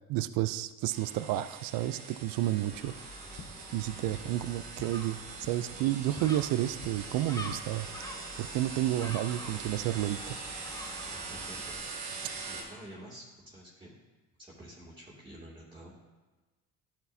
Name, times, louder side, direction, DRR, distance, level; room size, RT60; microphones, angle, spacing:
voice 1, 0.1-2.9 3.7-7.9 8.4-10.4, right 14 dB, 70° right, 14 dB, 0.5 m, -31 dB
sound 1, 0.9-12.6, right 4 dB, 90° right, 1.7 m, -43 dB
sound 2, 2.7-2.8 3.3-3.5 4.0-4.2 4.7-4.9 5.4-5.5 6.1-6.2 6.8-6.9 7.3-7.6, left 6 dB, 50° left, 1.2 m, -47 dB
Gull seagull, 2.7-11.8, left 2 dB, 10° left, 1.2 m, -47 dB
voice 2, 11.1-11.8 12.4-14.0 14.4-15.9, right 1 dB, 15° right, -6 dB, 2.4 m, -49 dB
11.5 x 7.9 x 2.7 m, 1.2 s
supercardioid pair, 70°, 36 cm